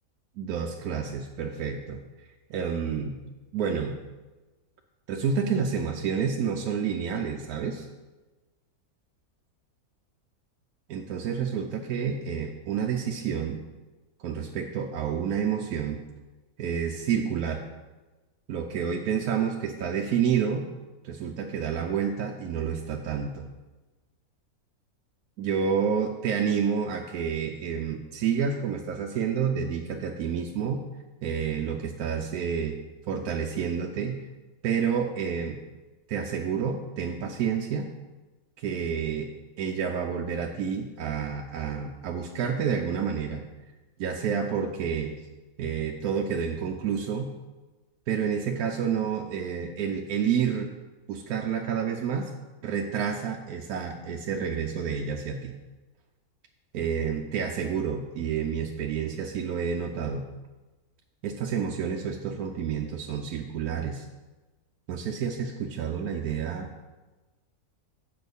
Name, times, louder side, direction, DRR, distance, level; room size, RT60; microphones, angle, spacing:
voice 1, 0.4-2.0 2.5-3.2 3.5-3.9 5.1-7.9 10.9-13.6 14.2-16.0 16.6-17.6 18.5-20.6 21.0-23.5 25.4-30.8 31.2-32.8 33.1-34.2 34.6-35.6 36.1-37.9 38.6-39.3 39.6-43.4 44.0-45.1 45.6-47.3 48.1-50.7 51.1-52.3 52.6-55.5 56.7-60.3 61.2-64.0 64.9-66.7, right 7 dB, 85° right, 2 dB, 1.1 m, -29 dB
8.4 x 6.2 x 5.3 m, 1.2 s
omnidirectional pair, 1.5 m